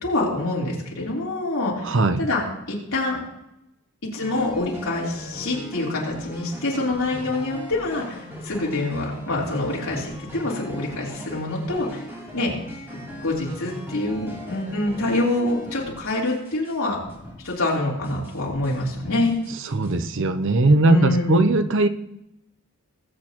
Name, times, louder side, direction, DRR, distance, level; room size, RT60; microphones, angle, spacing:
voice 1, 0.0-2.4 2.7-3.2 4.0-12.0 12.3-12.5 12.9-17.0 17.4-19.3 20.8-21.4, left 2 dB, 65° left, -4 dB, 3.5 m, -26 dB
voice 2, 1.8-2.2 19.7-21.9, right 2 dB, 55° right, 10 dB, 0.6 m, -19 dB
sound 1, 4.2-16.8 17.0-17.7 18.0-19.9, equal, 10° right, 3.1 m, -39 dB
19.5 x 8.4 x 3.0 m, 0.86 s
head